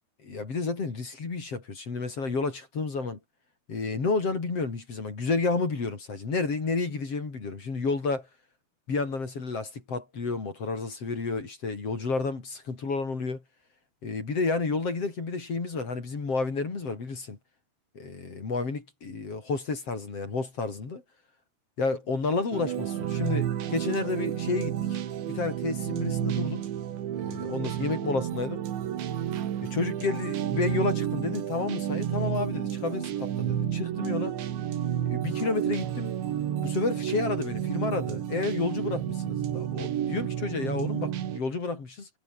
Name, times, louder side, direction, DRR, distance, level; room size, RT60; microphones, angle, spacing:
voice 1, 0.2-3.2 3.7-8.3 8.9-13.4 14.0-17.4 17.9-21.0 21.8-25.0 25.3-26.7 27.1-28.6 29.6-34.3 35.0-36.2 36.5-42.1, left 4 dB, 35° left, 4.7 m, -31 dB
sound 1, 22.5-41.4, right 10 dB, 85° right, 4.6 m, -31 dB
omnidirectional pair, 5.1 m